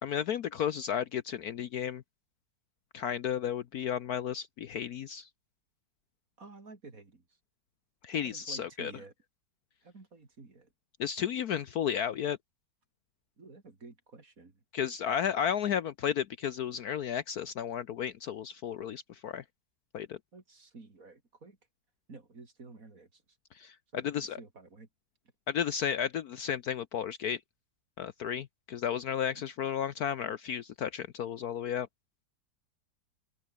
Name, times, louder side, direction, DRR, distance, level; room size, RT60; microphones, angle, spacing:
voice 1, 0.0-2.0 2.9-5.3 8.0-8.9 11.0-12.4 14.7-19.4 19.9-20.2 23.6-24.4 25.5-27.4 28.0-31.9, left 8 dB, 65° left, 1.2 m, -33 dB
voice 2, 6.4-7.2 8.1-9.1 9.8-10.7 13.4-14.6 20.3-21.6 22.1-23.2 23.9-24.9 29.3-29.4, right 3 dB, 50° right, 3.7 m, -51 dB
open air
omnidirectional pair, 1.9 m